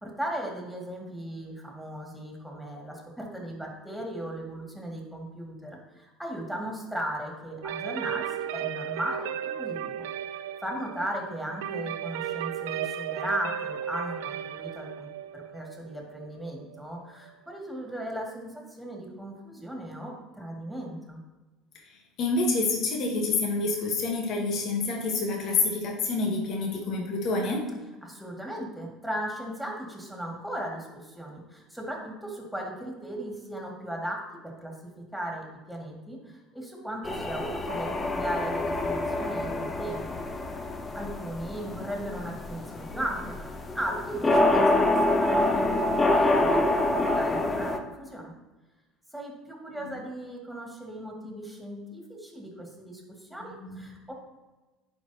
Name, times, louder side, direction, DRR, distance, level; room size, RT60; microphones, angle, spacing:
voice 1, 0.0-8.3 8.5-9.3 9.6-10.0 10.3-15.1 15.3-21.2 28.0-34.7 35.1-43.4 43.7-48.3 49.1-53.0 53.3-54.1, right 1 dB, ahead, -1 dB, 2.2 m, -37 dB
sound 1, 7.6-17.3, right 10 dB, 85° right, 0.3 m, -35 dB
voice 2, 22.2-27.7 53.6-53.8, left 3 dB, 55° left, 1 dB, 1.3 m, -27 dB
sound 2, 37.0-47.8, left 2 dB, 25° left, 0.8 m, -26 dB
11.0 x 4.6 x 2.9 m, 1.1 s
supercardioid pair, 90°, 0 cm